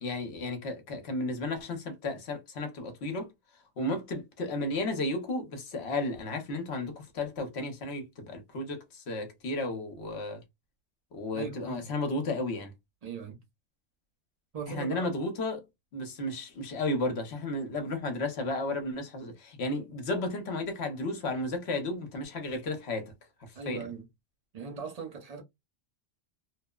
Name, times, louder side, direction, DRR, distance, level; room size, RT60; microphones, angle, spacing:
voice 1, 0.0-3.3 3.8-10.4 11.1-12.7 14.7-15.6 15.9-23.1 23.4-23.9, left 2 dB, 70° left, 1.0 m, -33 dB
voice 2, 11.3-11.9 13.0-13.4 14.5-15.1 23.5-24.0 24.5-25.4, right 5 dB, 40° right, 0.8 m, -39 dB
2.9 x 2.0 x 2.2 m
omnidirectional pair, 1.2 m